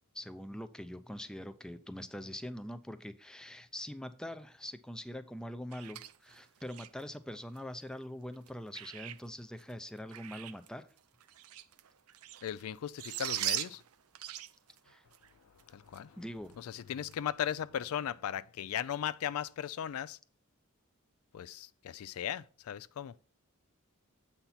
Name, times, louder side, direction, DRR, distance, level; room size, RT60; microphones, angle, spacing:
voice 1, 0.1-10.8 14.9-15.0 16.1-16.5, left 1 dB, 5° left, 0.5 m, -43 dB
sound 1, 5.7-7.0 7.5-7.6 8.3-9.3 9.6-10.7 11.0-12.6 12.9-15.3 15.6-15.7 15.9-16.0 16.5-16.7 17.1-17.2, right 13 dB, 80° right, 0.5 m, -40 dB
voice 2, 12.4-13.8 15.7-16.2 16.6-20.2 21.3-23.1, left 9 dB, 75° left, 0.4 m, -37 dB
8.0 x 4.3 x 5.7 m
head